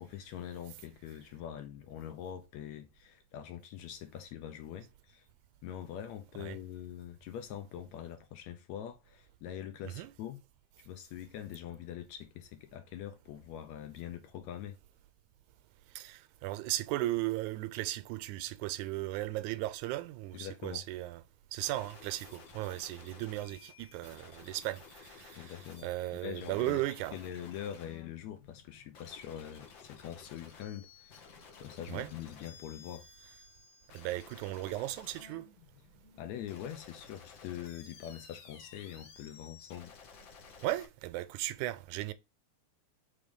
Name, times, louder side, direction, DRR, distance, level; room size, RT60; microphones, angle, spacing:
voice 1, 0.0-5.3 5.6-10.4 10.8-14.8 20.3-20.8 25.3-26.8 27.1-31.3 31.6-33.1 36.2-39.9, left 10 dB, 75° left, 1.9 m, -44 dB
voice 2, 16.0-21.2 21.5-25.5 25.8-27.2 31.9-32.1 33.9-35.5 40.6-42.1, right 16 dB, 85° right, 2.0 m, -36 dB
sound 1, 21.6-40.9, left 6 dB, 60° left, 1.3 m, -55 dB
4.8 x 3.7 x 5.2 m
omnidirectional pair, 3.4 m